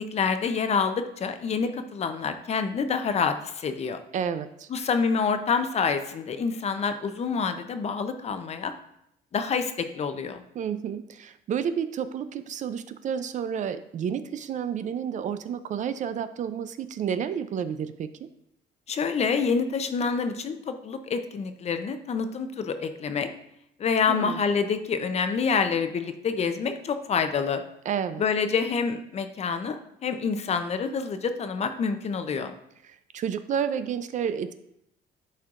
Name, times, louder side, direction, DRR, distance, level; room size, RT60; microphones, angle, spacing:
voice 1, 0.0-4.0 4.7-8.7 9.3-10.4 18.9-23.3 23.8-27.6 28.2-32.5, left 5 dB, 40° left, 9 dB, 0.6 m, -27 dB
voice 2, 4.1-4.7 10.5-18.3 24.1-24.4 27.8-28.2 32.8-34.6, right 8 dB, 45° right, 12 dB, 0.4 m, -30 dB
11.5 x 4.5 x 2.5 m, 0.78 s
cardioid pair, 110°, 17 cm